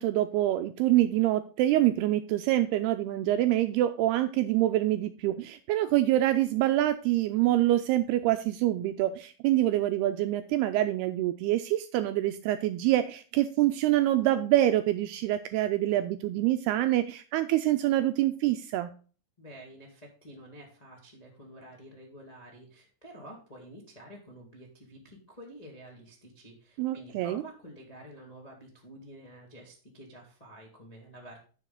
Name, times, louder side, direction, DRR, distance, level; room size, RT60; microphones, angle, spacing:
voice 1, 0.0-18.9 26.8-27.4, right 14 dB, 85° right, 8 dB, 2.3 m, -26 dB
voice 2, 19.4-31.4, right 1 dB, 60° left, -1 dB, 0.4 m, -49 dB
10.5 x 6.7 x 3.9 m, 0.38 s
omnidirectional pair, 5.1 m